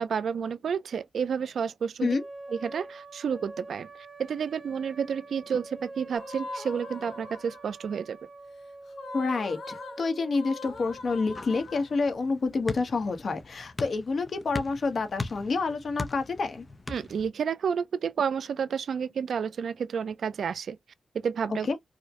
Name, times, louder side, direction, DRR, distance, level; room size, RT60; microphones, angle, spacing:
voice 1, 0.0-2.2 2.5-3.9 4.2-8.2 16.9-20.8 21.1-21.7, right 7 dB, 85° right, 0.4 m, -30 dB
sound 1, 2.0-11.0, right 2 dB, 25° right, 0.8 m, -45 dB
sound 2, 6.1-7.8 8.9-12.3, left 3 dB, 75° left, 1.0 m, -42 dB
voice 2, 9.1-16.6 21.7-21.8, left 4 dB, 55° left, 0.9 m, -28 dB
sound 3, 10.7-17.3, left 3 dB, 25° left, 0.5 m, -40 dB
4.7 x 2.1 x 2.7 m
wide cardioid pair, 155°, 0 cm